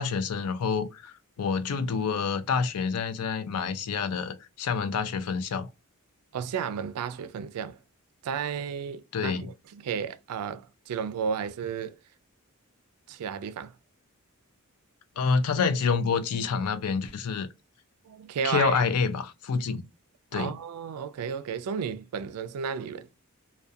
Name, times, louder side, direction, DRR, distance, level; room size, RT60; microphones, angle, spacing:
voice 1, 0.0-5.7 9.1-9.5 15.2-17.5 18.4-19.8 20.3-20.6, left 5 dB, 90° left, 0.4 m, -28 dB
voice 2, 6.3-7.8 8.2-9.5 9.8-11.9 13.1-13.7 18.1-18.8 20.3-23.1, right 7 dB, 90° right, 0.3 m, -33 dB
2.3 x 2.2 x 2.5 m
head